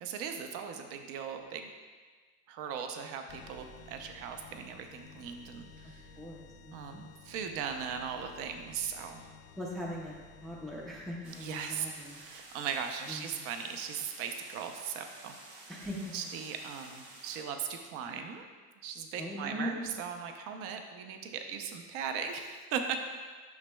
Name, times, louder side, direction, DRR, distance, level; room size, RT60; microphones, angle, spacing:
voice 1, 0.0-1.7 2.5-6.1 6.7-9.3 11.4-11.9 12.2-15.4 16.1-18.5 18.8-23.0, right 7 dB, 50° right, 5 dB, 0.6 m, -38 dB
sound 1, 3.3-12.7, left 4 dB, 55° left, 0.7 m, -54 dB
voice 2, 5.8-7.0 9.6-12.2 13.1-13.4 15.7-16.1 19.2-19.9 20.5-20.6, equal, ahead, -3 dB, 0.4 m, -41 dB
sound 2, 11.2-17.4, right 2 dB, 70° right, 1.8 m, -52 dB
10.5 x 6.1 x 2.2 m, 1.5 s
cardioid pair, 170°, 31 cm